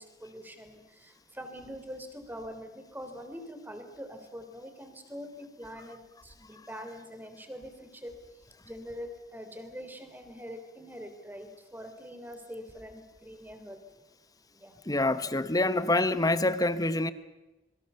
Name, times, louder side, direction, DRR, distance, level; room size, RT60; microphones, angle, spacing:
voice 1, 0.0-8.2 8.6-13.8 14.5-14.7, equal, 10° right, 7 dB, 3.3 m, -44 dB
voice 2, 14.9-17.1, left 2 dB, 20° left, 13 dB, 1.1 m, -26 dB
27.0 x 23.0 x 6.9 m, 1.1 s
head